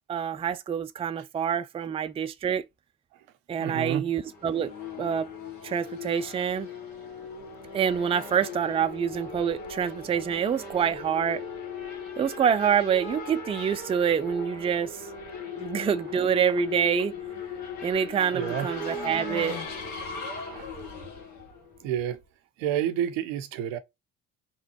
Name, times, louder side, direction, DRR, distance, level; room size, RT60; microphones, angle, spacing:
voice 1, 0.1-2.6 3.5-5.3 5.6-6.7 7.7-11.4 12.2-15.0 15.6-17.1 17.8-19.6, right 8 dB, 15° right, 0.3 m, -26 dB
voice 2, 3.6-4.1 18.3-18.7 20.5-20.7 21.8-22.2 22.6-23.8, right 10 dB, 85° right, 0.6 m, -29 dB
Race car auto racing / Accelerating revving vroom, 4.1-22.2, left 4 dB, 85° left, 1.4 m, -38 dB
3.9 x 3.0 x 2.8 m
hypercardioid pair, 55°, 38 cm